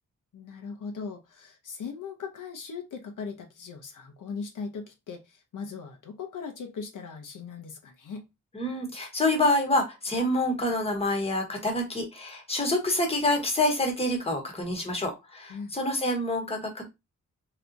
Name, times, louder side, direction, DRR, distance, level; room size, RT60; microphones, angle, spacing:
voice 1, 0.3-8.3 15.5-15.7, left 5 dB, 75° left, 0.8 m, -39 dB
voice 2, 8.5-16.9, left 1 dB, 20° left, 1.1 m, -27 dB
3.3 x 2.9 x 2.5 m
wide cardioid pair, 125°, 31 cm